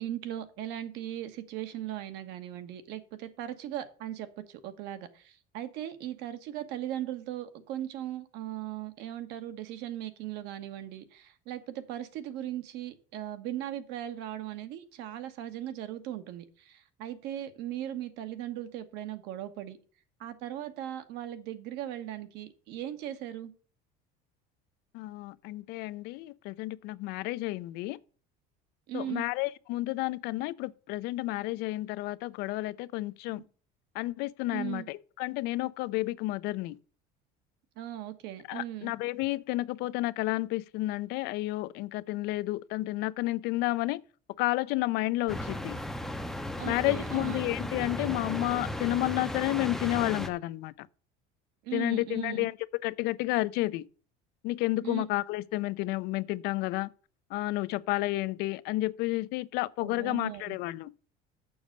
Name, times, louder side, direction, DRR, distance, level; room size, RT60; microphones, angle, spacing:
voice 1, 0.0-19.8 20.2-23.5 28.9-29.3 34.5-34.9 37.8-38.9 46.6-47.4 51.6-52.5 54.8-55.1 59.8-60.6, right 12 dB, 65° right, 1.2 m, -38 dB
voice 2, 24.9-28.0 28.9-33.4 33.9-36.8 38.5-44.0 44.4-45.8 46.6-50.9 51.7-53.9 54.4-56.9 57.3-60.9, left 19 dB, 60° left, 0.5 m, -31 dB
sound 1, 45.3-50.3, left 1 dB, ahead, 0.6 m, -35 dB
7.0 x 6.2 x 6.5 m
cardioid pair, 155°, 19 cm